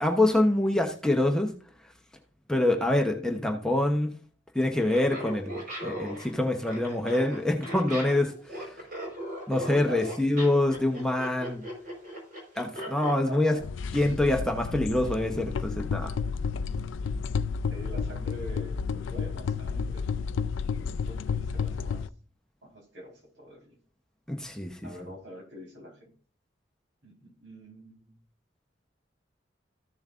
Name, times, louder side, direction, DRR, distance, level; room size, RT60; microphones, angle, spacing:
voice 1, 0.0-1.5 2.5-4.1 4.5-8.8 9.5-11.6 12.6-13.5 13.9-16.1 24.3-24.8, left 1 dB, 5° left, 2 dB, 0.8 m, -25 dB
Laughter, 4.8-13.2, equal, 50° right, 4.7 m, -38 dB
voice 2, 13.2-13.6 17.7-20.4 20.7-22.0 22.6-23.7 24.8-26.1 27.0-28.0, right 1 dB, 75° right, 0 dB, 4.0 m, -45 dB
sound 1, 13.6-22.1, left 5 dB, 80° left, 0.4 m, -31 dB
14.0 x 7.1 x 2.5 m, 0.43 s
head